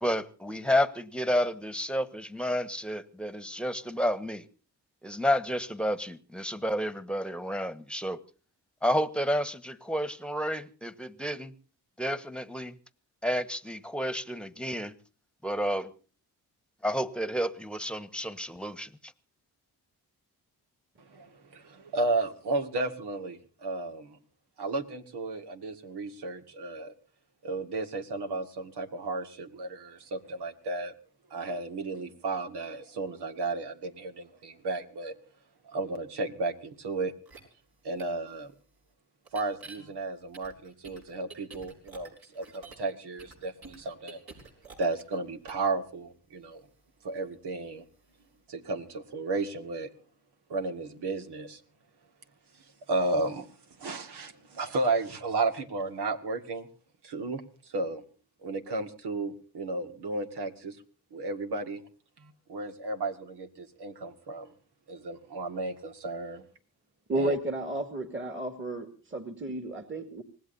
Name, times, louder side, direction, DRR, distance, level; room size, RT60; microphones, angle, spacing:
voice 1, 0.0-4.4 5.0-8.2 8.8-11.5 12.0-12.8 13.2-14.9 15.4-15.9 16.8-18.9, equal, 5° left, 14 dB, 1.3 m, -30 dB
voice 2, 21.0-24.2 24.6-26.9 27.4-30.9 31.3-35.2 35.6-37.1 37.8-38.5 39.3-44.2 44.8-46.6 47.0-47.8 48.5-49.9 50.5-51.6 52.9-53.5 53.8-56.7 57.0-58.0 58.4-60.8 61.1-61.8 62.2-64.5 64.9-66.4 67.1-67.3, right 3 dB, 90° right, 6 dB, 2.0 m, -33 dB
sound 1, 37.3-37.4 38.0-38.1 39.2-39.8 40.3-42.9 43.2-45.2 45.5-45.7, right 4 dB, 70° right, 6.5 m, -48 dB
voice 3, 67.1-70.2, right 1 dB, 30° right, 6 dB, 2.3 m, -32 dB
25.5 x 19.0 x 2.7 m, 0.39 s
cardioid pair, 80°, 39 cm